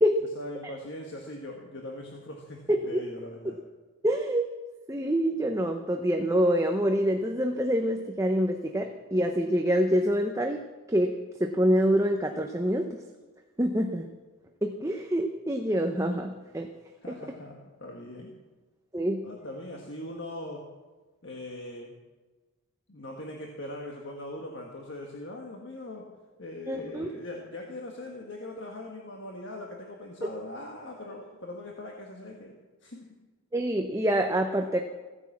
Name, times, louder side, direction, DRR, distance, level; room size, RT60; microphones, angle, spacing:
voice 1, 0.3-3.6 17.0-18.3 19.2-20.7 21.2-21.9 22.9-26.1 26.4-32.5 32.8-33.2, left 1 dB, 50° left, 1 dB, 1.6 m, -41 dB
voice 2, 2.7-3.0 4.0-4.4 4.9-10.6 10.9-11.1 11.4-13.0 13.6-14.1 14.6-16.7 17.1-17.2 18.9-19.2 26.7-27.1 33.5-34.8, equal, 15° right, 4 dB, 0.7 m, -26 dB
16.0 x 10.0 x 7.3 m, 1.3 s
head